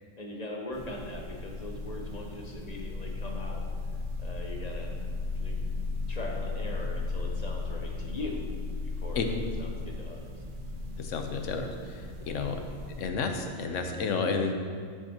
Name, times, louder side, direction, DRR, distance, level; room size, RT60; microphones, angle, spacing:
voice 1, 0.2-3.6 4.2-4.9 5.3-5.6 6.1-8.4 8.8-9.3 9.6-10.4 12.2-12.5, left 2 dB, 35° left, 0 dB, 0.8 m, -41 dB
sound 1, 0.7-13.1, left 3 dB, 50° right, 0.8 m, -36 dB
voice 2, 11.0-12.6 13.0-14.5, left 4 dB, 75° left, 5 dB, 1.1 m, -31 dB
9.8 x 7.1 x 2.9 m, 2.1 s
omnidirectional pair, 1.3 m